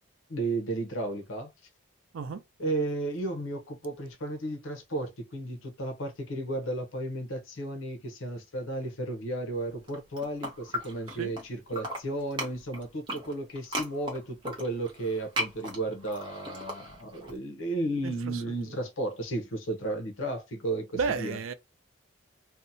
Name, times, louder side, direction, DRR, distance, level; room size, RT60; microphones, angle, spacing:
voice 1, 0.3-1.5 2.6-21.4, right 2 dB, 85° left, 0.7 m, -34 dB
sound 1, 9.8-11.4 11.7-17.3, equal, 25° right, 0.6 m, -37 dB
voice 2, 18.0-18.7 20.9-21.5, right 5 dB, 85° right, 0.4 m, -33 dB
2.7 x 2.1 x 2.6 m
head